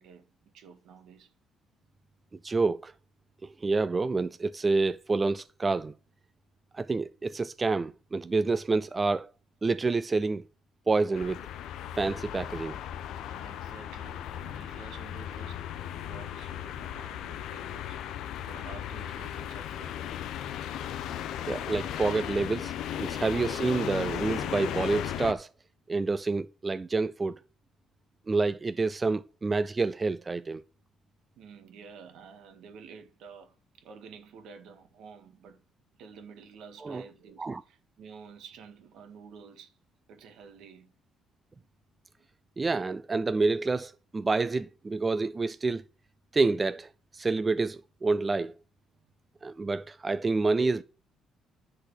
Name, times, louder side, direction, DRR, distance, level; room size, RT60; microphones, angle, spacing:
voice 1, 0.0-1.3 13.2-15.7 15.9-18.0 18.5-20.0 31.4-35.6 36.0-39.8 40.1-40.9 49.0-49.1, right 6 dB, 75° right, 1.7 m, -50 dB
voice 2, 2.4-2.9 3.4-5.9 6.7-9.3 9.6-10.4 10.9-11.4 12.0-12.8 21.5-22.7 23.0-25.5 25.9-27.4 28.3-30.6 36.8-37.0 37.4-37.6 42.6-45.8 46.3-46.9 47.1-48.5 49.4-50.8, right 3 dB, 20° right, 0.4 m, -28 dB
sound 1, 11.1-25.3, left 10 dB, 75° left, 0.8 m, -36 dB
10.5 x 4.1 x 6.4 m
cardioid pair, 130°, 0 cm